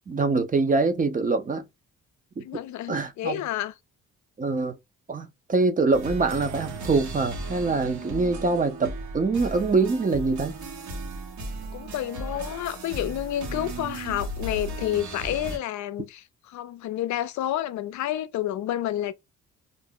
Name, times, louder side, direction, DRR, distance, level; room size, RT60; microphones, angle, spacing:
voice 1, 0.1-1.7 2.4-2.5 2.9-3.4 4.4-4.7 5.1-10.6, right 3 dB, 25° right, 0.6 m, -24 dB
voice 2, 2.4-3.7 11.7-19.1, left 13 dB, 70° left, 0.5 m, -30 dB
sound 1, 5.9-15.6, right 2 dB, 70° right, 1.2 m, -36 dB
2.6 x 2.1 x 3.6 m
cardioid pair, 90°, 30 cm